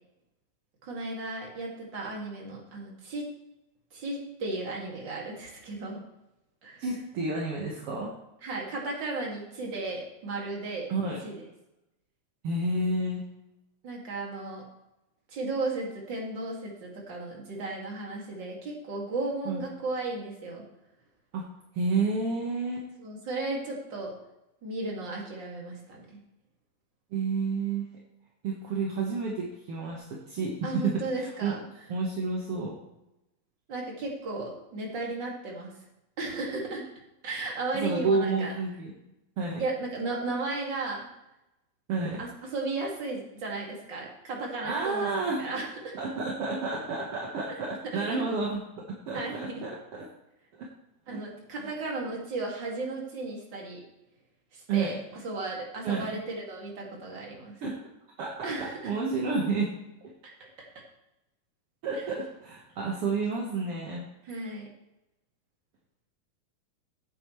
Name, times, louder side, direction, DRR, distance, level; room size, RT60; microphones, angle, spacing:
voice 1, 0.8-3.2 3.9-6.0 6.6-6.9 8.4-10.9 11.2-11.4 13.8-14.6 15.3-20.6 23.0-24.1 24.6-26.2 30.6-31.6 33.7-35.7 36.2-36.9 37.2-38.5 39.6-41.1 42.2-46.0 47.8-48.2 49.1-49.6 51.1-53.8 54.5-57.5 58.4-59.0 60.2-60.5 61.9-62.0 64.2-64.7, right 2 dB, 35° right, -1 dB, 2.4 m, -35 dB
voice 2, 6.8-8.1 10.9-11.2 12.4-13.2 19.4-19.6 21.3-21.4 21.7-22.9 27.1-27.8 28.4-31.0 31.4-31.5 31.9-32.8 37.8-38.9 39.4-39.6 41.9-42.2 44.6-45.4 45.9-50.1 50.6-50.7 51.6-51.7 54.7-54.9 55.8-56.1 57.6-57.7 58.2-59.7 61.8-64.0, right 3 dB, 55° right, -2 dB, 1.7 m, -30 dB
16.0 x 8.6 x 3.2 m, 0.92 s
omnidirectional pair, 4.2 m